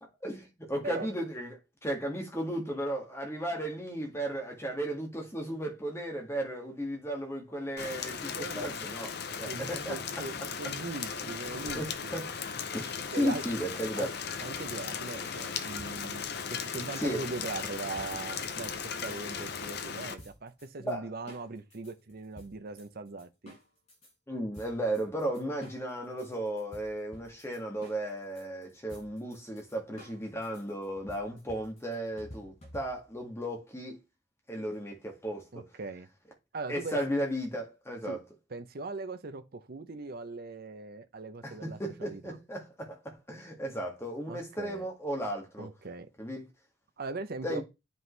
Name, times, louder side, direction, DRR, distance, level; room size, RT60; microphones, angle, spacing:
voice 1, 0.2-1.6 1.8-9.1 9.4-10.2 11.6-12.3 12.7-14.2 17.0-17.2 20.8-21.1 24.3-34.0 34.5-35.6 36.7-38.2 41.4-45.7 46.2-46.4 47.4-47.6, right 1 dB, 15° left, 2.1 m, -35 dB
Rain, 7.8-20.1, left 6 dB, 60° left, 0.8 m, -37 dB
voice 2, 8.3-8.9 9.4-12.2 13.1-13.4 14.0-14.1 14.4-16.2 16.5-23.6 35.5-36.1 36.5-37.0 38.1-38.2 38.5-42.4 44.3-44.9 45.6-46.1 47.0-47.6, right 3 dB, 55° right, 0.7 m, -40 dB
sound 1, 15.8-19.7 20.2-20.9 21.3-24.1 24.5-33.2, left 1 dB, 35° left, 5.7 m, -52 dB
9.2 x 5.4 x 3.3 m
head